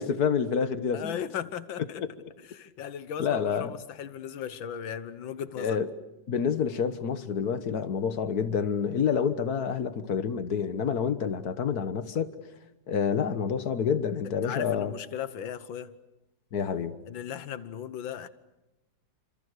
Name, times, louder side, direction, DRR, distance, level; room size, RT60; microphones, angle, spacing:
voice 1, 0.0-1.2 1.9-2.1 3.2-3.7 5.6-5.9 6.3-12.3 12.9-14.9 16.5-17.0, left 7 dB, 55° left, 1.8 m, -28 dB
voice 2, 0.9-2.1 2.4-5.8 14.4-16.0 17.1-18.3, left 9 dB, 85° left, 1.9 m, -37 dB
28.5 x 26.5 x 6.7 m
omnidirectional pair, 2.0 m